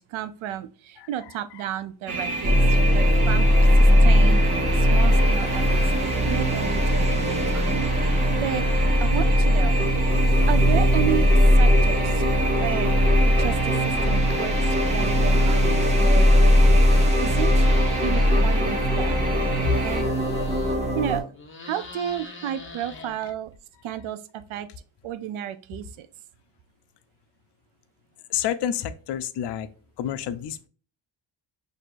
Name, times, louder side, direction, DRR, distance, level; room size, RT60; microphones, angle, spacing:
voice 1, 0.0-4.5 4.7-7.7 8.0-8.7 9.0-10.0 10.5-11.3 11.6-12.3 12.5-13.0 13.2-16.3 17.2-17.7 18.0-19.2 19.8-20.2 21.0-21.3 21.6-23.5 23.8-24.7 25.0-26.1, right 11 dB, 75° right, 13 dB, 0.6 m, -32 dB
sound 1, 2.1-20.0, right 3 dB, 40° right, 1.6 m, -31 dB
sound 2, 2.4-21.2, equal, 15° right, 0.8 m, -19 dB
sound 3, 17.4-18.9 19.2-21.0 21.3-23.6, left 3 dB, 25° left, 0.9 m, -42 dB
voice 2, 28.3-29.7 30.0-30.7, left 9 dB, 60° left, 10 dB, 0.5 m, -28 dB
6.1 x 2.7 x 2.5 m, 0.40 s
cardioid pair, 125°, 48 cm